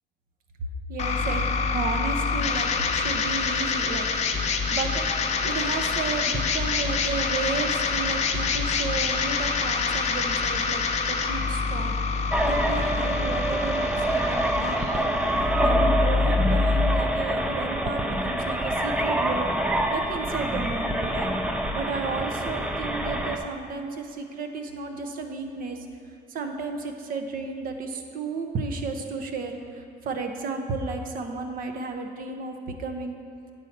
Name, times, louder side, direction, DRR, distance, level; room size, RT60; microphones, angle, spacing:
voice 1, 0.9-4.1 4.4-5.1 5.4-19.5 19.9-21.3 21.7-25.8 26.3-33.2, right 4 dB, 60° right, 5 dB, 0.7 m, -33 dB
sound 1, 1.0-17.0, left 5 dB, 45° left, 0.6 m, -26 dB
sound 2, 12.3-23.4, right 1 dB, 5° right, 0.4 m, -26 dB
8.5 x 4.2 x 5.8 m, 2.5 s
cardioid pair, 150°, 17 cm